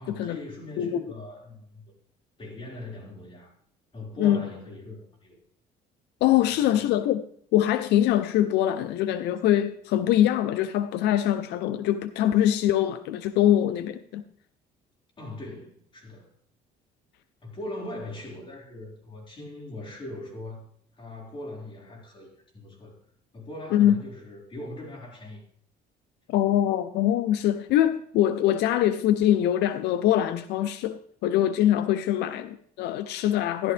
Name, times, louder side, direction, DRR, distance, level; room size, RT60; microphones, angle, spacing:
voice 1, 0.0-1.8 2.4-3.5 3.9-5.4 6.7-7.0 15.2-16.3 17.4-20.6 21.0-23.0 23.3-25.4, left 1 dB, 30° left, 4.8 m, -40 dB
voice 2, 6.2-7.2 7.5-14.2 23.7-24.0 26.3-33.7, left 11 dB, 80° left, 0.6 m, -23 dB
14.0 x 11.5 x 3.3 m
cardioid pair, 110°, 17 cm